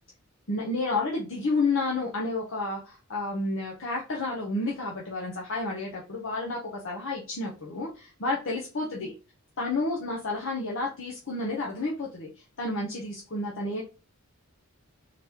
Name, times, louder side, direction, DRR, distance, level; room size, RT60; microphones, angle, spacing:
voice 1, 0.5-9.1 9.6-12.3 12.6-13.8, left 2 dB, 60° left, -2 dB, 0.9 m, -30 dB
3.9 x 2.9 x 3.5 m, 0.32 s
head